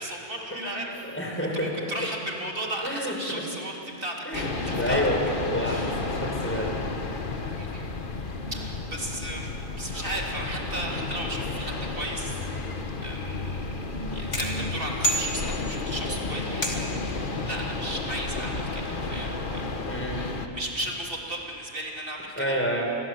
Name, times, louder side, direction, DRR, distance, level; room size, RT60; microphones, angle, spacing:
voice 1, 0.0-5.0 5.6-6.0 7.6-7.9 8.5-9.5 9.8-12.5 13.0-13.7 14.1-19.9 20.2-22.6, right 1 dB, 40° right, -1 dB, 3.6 m, -35 dB
voice 2, 1.0-2.1 2.8-3.4 4.2-4.5 4.8-5.3 5.5-6.8 19.9-20.2 22.4-22.9, equal, 10° left, 0 dB, 4.8 m, -29 dB
sound 1, 4.3-20.5, left 3 dB, 40° left, 1.6 m, -32 dB
sound 2, 14.3-15.9 16.6-17.1, right 1 dB, 60° left, 3.2 m, -30 dB
28.5 x 22.0 x 8.1 m, 2.9 s
omnidirectional pair, 1.4 m